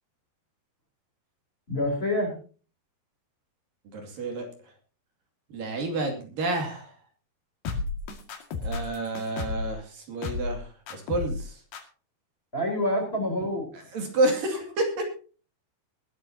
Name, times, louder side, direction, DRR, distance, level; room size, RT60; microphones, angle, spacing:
voice 1, 1.7-2.3 12.5-13.7, left 1 dB, 15° left, 2 dB, 3.6 m, -27 dB
voice 2, 3.9-4.5 5.5-6.9 8.6-11.6 13.9-15.2, right 2 dB, 60° right, 3 dB, 4.0 m, -29 dB
sound 1, 7.7-9.7 10.2-10.6 10.9-11.4 11.7-11.8, left 3 dB, 75° left, 4.0 m, -32 dB
21.0 x 12.0 x 2.8 m, 0.37 s
omnidirectional pair, 4.6 m